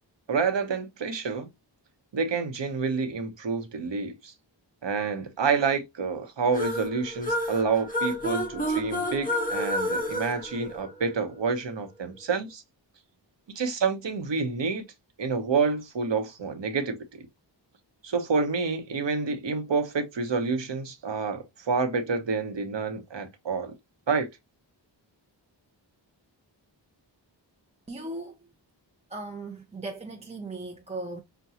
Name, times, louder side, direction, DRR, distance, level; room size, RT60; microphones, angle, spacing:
voice 1, 0.3-1.5 2.1-4.3 4.8-12.6 13.5-14.8 15.2-17.0 18.0-23.7 24.1-24.3, right 4 dB, 70° right, 1.0 m, -28 dB
sound 1, 6.5-11.3, left 1 dB, 20° left, 1.4 m, -30 dB
voice 2, 27.9-28.3 29.1-31.2, right 2 dB, 15° right, 0.6 m, -37 dB
5.8 x 2.2 x 2.8 m
wide cardioid pair, 70°, 45 cm